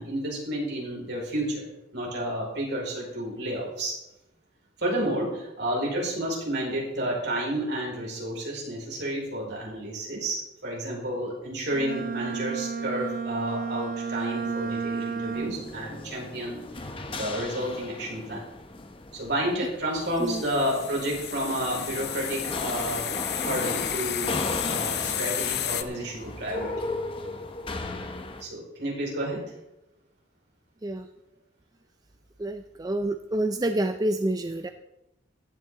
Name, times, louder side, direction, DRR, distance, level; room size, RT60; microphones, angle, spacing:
voice 1, 0.0-1.6 1.9-4.0 4.8-18.5 19.1-23.0 23.3-26.9 28.4-29.4, right 1 dB, 65° right, -3 dB, 5.0 m, -31 dB
Bowed string instrument, 11.7-15.8, right 5 dB, 45° right, 1.1 m, -32 dB
sound 1, 15.3-28.4, left 2 dB, 30° left, 0.8 m, -36 dB
sound 2, 20.2-25.8, left 11 dB, 55° left, 0.6 m, -32 dB
voice 2, 32.4-34.7, right 1 dB, 20° right, 8 dB, 0.4 m, -28 dB
15.5 x 10.5 x 3.7 m, 0.91 s
head